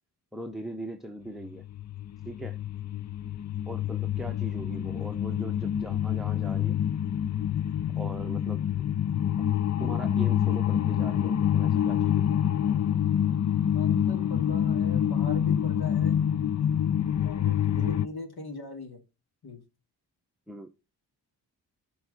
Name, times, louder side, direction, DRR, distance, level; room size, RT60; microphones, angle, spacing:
voice 1, 0.3-1.6 2.2-2.6 3.7-6.8 7.9-8.9 9.8-12.4 20.5-20.7, equal, ahead, 0.9 m, -40 dB
sound 1, 1.4-18.1, left 9 dB, 40° left, 0.5 m, -27 dB
voice 2, 13.7-16.2 17.2-19.0 19.4-19.6, left 3 dB, 60° left, 2.4 m, -39 dB
7.1 x 4.7 x 6.6 m
cardioid pair, 70°, 43 cm